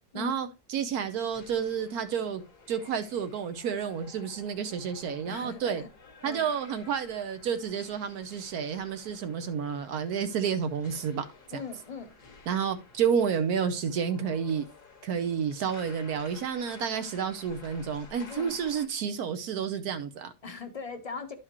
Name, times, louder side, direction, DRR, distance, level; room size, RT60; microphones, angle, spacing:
voice 1, 0.1-2.4 2.7-5.8 6.2-11.2 12.5-14.6 15.0-20.3, right 7 dB, 70° right, 1.1 m, -30 dB
sound 1, 1.0-18.9, left 4 dB, 75° left, 2.0 m, -53 dB
voice 2, 5.2-5.9 6.2-6.5 11.5-12.1 18.3-18.6 20.4-21.3, left 5 dB, 30° left, 0.7 m, -39 dB
11.0 x 4.9 x 2.9 m
omnidirectional pair, 1.7 m